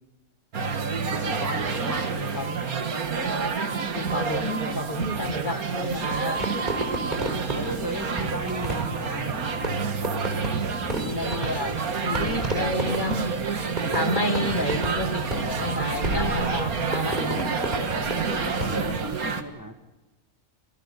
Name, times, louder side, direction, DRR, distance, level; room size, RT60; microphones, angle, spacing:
sound 1, 0.5-19.4, right 5 dB, 90° right, 2.2 m, -28 dB
voice 1, 1.1-2.6 7.5-9.4 18.1-19.8, right 1 dB, 15° right, 7 dB, 1.5 m, -35 dB
voice 2, 3.9-6.4 10.8-11.8 12.0-13.3 13.9-17.5, left 1 dB, 35° left, 7 dB, 1.8 m, -30 dB
Fireworks, 6.4-19.1, right 1 dB, 30° right, 4.5 m, -32 dB
27.5 x 18.0 x 8.4 m, 1.1 s
omnidirectional pair, 1.5 m